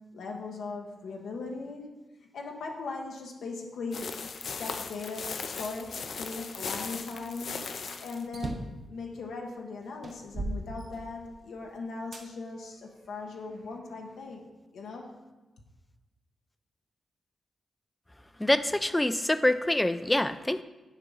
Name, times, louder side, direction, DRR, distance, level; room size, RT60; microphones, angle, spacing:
voice 1, 0.1-2.0 2.3-4.3 4.6-8.6 8.9-14.5 14.7-15.1, left 3 dB, 85° left, 1 dB, 1.0 m, -39 dB
sound 1, 3.9-8.3, left 5 dB, 65° left, 0.5 m, -38 dB
sound 2, 8.3-8.8 9.5-9.6 10.0-11.5 12.1-12.3 13.0-14.0, right 2 dB, 45° right, 0.8 m, -37 dB
voice 2, 18.4-20.6, left 1 dB, 10° left, 12 dB, 0.4 m, -25 dB
10.0 x 3.7 x 5.4 m, 1.1 s
cardioid pair, 95°, 0 cm